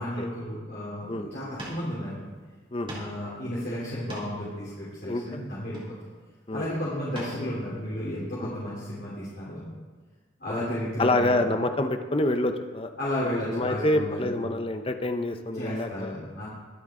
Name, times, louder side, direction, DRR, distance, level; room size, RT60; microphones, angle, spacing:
voice 1, 0.0-2.3 2.9-5.9 6.5-9.7 10.4-11.4 13.0-14.4 15.5-16.5, left 1 dB, 55° left, -9 dB, 3.4 m, -33 dB
sound 1, 1.3-1.4 1.6-1.9 2.2-2.3 2.9-3.2 3.8-4.5 5.6-6.2 7.1-7.4 7.9-8.0, right 1 dB, 25° right, 2.8 m, -40 dB
voice 2, 11.0-12.9 13.5-16.1, left 1 dB, 30° left, 7 dB, 0.8 m, -27 dB
23.0 x 7.8 x 3.8 m, 1.5 s
head